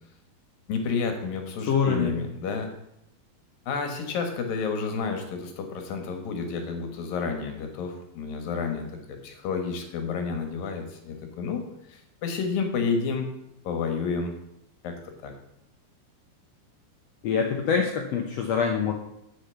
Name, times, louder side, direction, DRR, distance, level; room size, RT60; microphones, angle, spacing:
voice 1, 0.7-2.7 3.7-13.3 13.6-14.3 14.8-14.9 15.2-15.3, left 5 dB, 70° left, 5 dB, 3.0 m, -30 dB
voice 2, 1.7-2.2 17.2-18.9, left 6 dB, 90° left, 2 dB, 1.4 m, -25 dB
8.2 x 6.7 x 6.9 m, 0.82 s
omnidirectional pair, 4.3 m